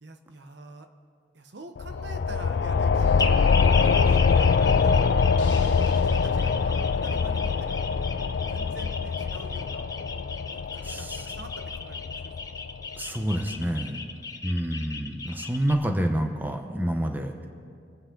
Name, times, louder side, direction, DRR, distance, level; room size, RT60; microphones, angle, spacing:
voice 1, 0.0-0.9 1.3-5.1 5.7-9.9 10.5-12.5 13.7-14.2, right 2 dB, 65° right, 6 dB, 0.9 m, -46 dB
sound 1, 1.8-13.0, left 5 dB, 60° left, 0.4 m, -24 dB
sound 2, 3.2-15.7, left 4 dB, 20° left, 0.6 m, -36 dB
sound 3, 5.4-7.7, left 6 dB, 80° left, 1.7 m, -48 dB
voice 2, 10.8-11.3 13.0-14.0 14.4-17.5, right 1 dB, 10° right, 4 dB, 0.8 m, -28 dB
25.5 x 8.8 x 3.8 m, 2.3 s
head